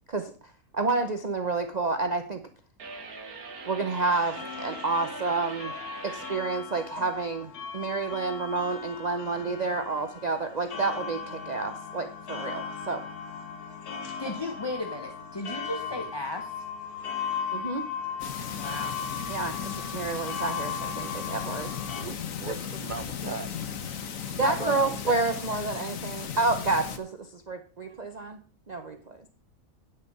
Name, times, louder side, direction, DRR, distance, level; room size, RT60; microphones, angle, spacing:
voice 1, 0.7-2.4 3.6-5.7 6.0-13.0 17.5-17.9 19.3-21.7 24.4-28.4 28.7-29.3, right 3 dB, 35° right, 7 dB, 0.8 m, -29 dB
sound 1, 2.8-6.4, right 4 dB, 85° right, 1.9 m, -42 dB
sound 2, 4.1-22.0, left 6 dB, 90° left, 1.7 m, -37 dB
voice 2, 14.2-16.6 18.5-19.0 24.4-24.7, left 2 dB, 20° left, 5 dB, 0.9 m, -35 dB
sound 3, 18.2-27.0, left 7 dB, 65° left, 1.4 m, -36 dB
voice 3, 22.0-23.5 24.6-25.2 27.9-28.0, right 5 dB, 65° right, 11 dB, 0.5 m, -38 dB
9.1 x 8.6 x 5.3 m, 0.38 s
omnidirectional pair, 1.5 m